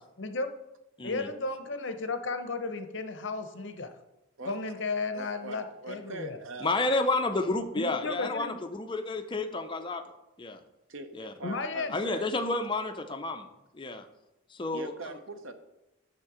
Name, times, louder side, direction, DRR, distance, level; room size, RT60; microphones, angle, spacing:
voice 1, 0.2-0.5 1.0-3.9 4.5-6.4 7.8-8.6 11.4-11.9, left 3 dB, 55° left, 8 dB, 0.7 m, -34 dB
voice 2, 4.4-4.7 5.1-6.7 10.9-12.3 14.7-15.5, right 3 dB, 65° right, 9 dB, 0.8 m, -42 dB
voice 3, 6.6-10.0 10.4-10.6 11.1-11.3 11.9-13.5 13.7-14.1 14.5-15.1, left 2 dB, 20° left, 7 dB, 0.5 m, -30 dB
7.3 x 6.5 x 4.9 m, 0.95 s
head